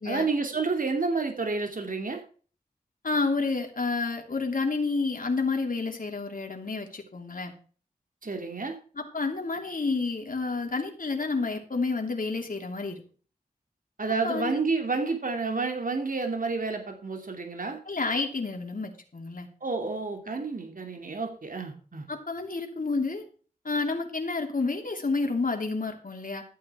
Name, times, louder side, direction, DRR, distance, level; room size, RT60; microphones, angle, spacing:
voice 1, 0.1-2.2 8.2-8.8 14.0-17.8 19.6-22.0, right 4 dB, 60° right, 4 dB, 2.7 m, -30 dB
voice 2, 3.0-7.5 8.9-13.0 14.2-14.6 17.9-19.5 22.1-23.2 23.6-26.4, left 3 dB, 60° left, 3 dB, 2.8 m, -30 dB
13.5 x 8.4 x 4.5 m, 0.40 s
cardioid pair, 45°, 16 cm